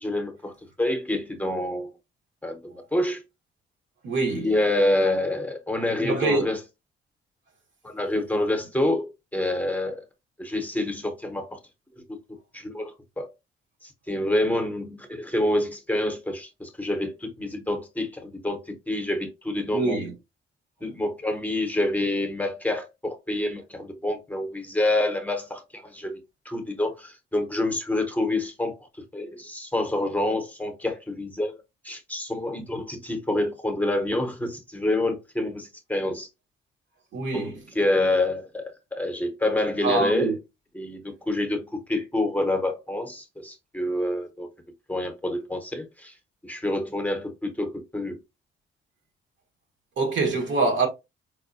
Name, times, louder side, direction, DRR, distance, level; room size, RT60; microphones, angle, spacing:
voice 1, 0.0-0.5 0.8-1.9 2.4-3.2 4.3-6.6 7.8-10.0 10.4-11.5 12.1-12.2 12.5-13.3 13.8-20.0 20.8-26.2 26.5-28.7 29.1-31.5 31.8-36.3 37.3-37.5 37.7-40.3 40.7-41.0 41.3-44.5 44.9-46.1 46.4-48.2, left 1 dB, 10° left, 0.7 m, -27 dB
voice 2, 4.0-4.5 6.0-6.5 19.7-20.1 37.1-37.6 39.8-40.4 50.0-50.9, right 3 dB, 70° right, 1.2 m, -25 dB
4.7 x 2.1 x 2.6 m
cardioid pair, 90°, 20 cm